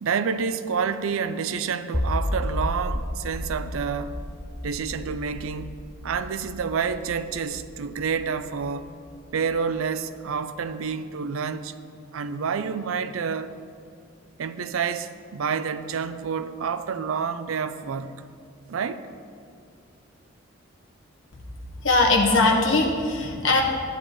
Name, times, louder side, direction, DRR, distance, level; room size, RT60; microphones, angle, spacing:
voice 1, 0.0-4.2 4.6-5.7 6.0-8.9 9.3-11.7 12.1-13.5 14.4-18.3 18.7-19.1, right 6 dB, 75° right, 12 dB, 0.4 m, -28 dB
sound 1, 1.9-9.1, left 1 dB, 10° left, 0.4 m, -32 dB
voice 2, 21.8-23.6, left 3 dB, 60° left, 0 dB, 1.3 m, -20 dB
13.0 x 9.5 x 3.0 m, 2.3 s
head